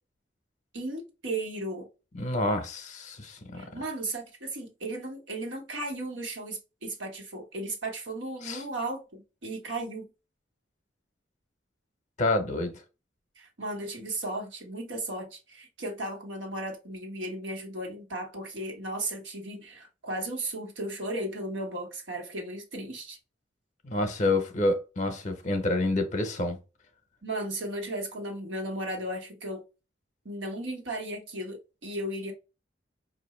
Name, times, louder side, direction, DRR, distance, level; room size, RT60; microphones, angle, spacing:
voice 1, 0.7-1.9 3.5-10.1 13.4-23.2 27.2-29.6 30.2-32.3, right 1 dB, 85° right, 1.3 m, -35 dB
voice 2, 2.1-3.6 8.4-8.6 12.2-12.7 23.8-26.6, left 2 dB, 40° left, 0.7 m, -28 dB
4.8 x 2.5 x 3.1 m
head